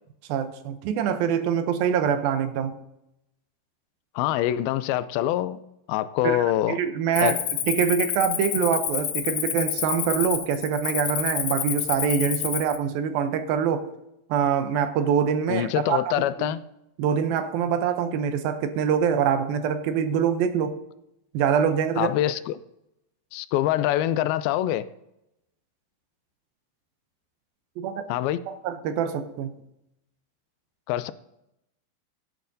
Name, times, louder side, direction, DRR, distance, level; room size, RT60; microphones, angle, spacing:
voice 1, 0.3-2.7 6.2-7.4 7.7-13.9 14.3-16.5 17.0-20.8 21.3-22.1 27.8-28.0 28.5-29.5, right 7 dB, 80° right, 2.5 m, -25 dB
voice 2, 4.2-5.6 5.9-6.8 7.2-7.4 15.5-16.6 22.0-22.6 23.3-24.9 28.1-28.4 30.9-31.1, left 13 dB, 85° left, 2.4 m, -25 dB
Cricket, 7.1-12.8, left 10 dB, 70° left, 2.4 m, -29 dB
15.0 x 10.5 x 2.7 m
omnidirectional pair, 4.3 m